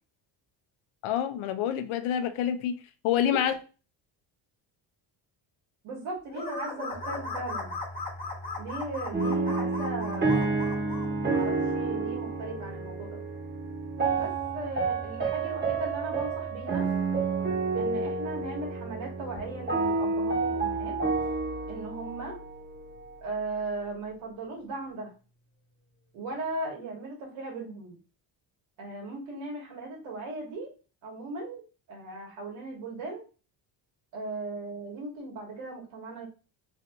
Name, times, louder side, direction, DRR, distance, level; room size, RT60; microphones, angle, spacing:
voice 1, 1.0-2.7 3.0-3.6, left 10 dB, 75° left, 0.6 m, -27 dB
voice 2, 5.8-7.7 8.6-10.8 11.3-13.2 14.2-16.9 17.8-20.9 21.7-22.4 23.2-25.1 26.1-28.0 28.8-30.7 31.0-31.6 31.9-33.2 34.1-36.3, right 2 dB, 85° right, 1.5 m, -37 dB
sound 1, 6.3-11.1, left 3 dB, 20° left, 1.1 m, -37 dB
Domestic sounds home sounds, 6.9-23.8, equal, 55° left, 1.1 m, -45 dB
sound 2, 9.1-23.1, right 4 dB, 25° right, 1.1 m, -30 dB
3.2 x 2.8 x 2.6 m
cardioid pair, 85°, 49 cm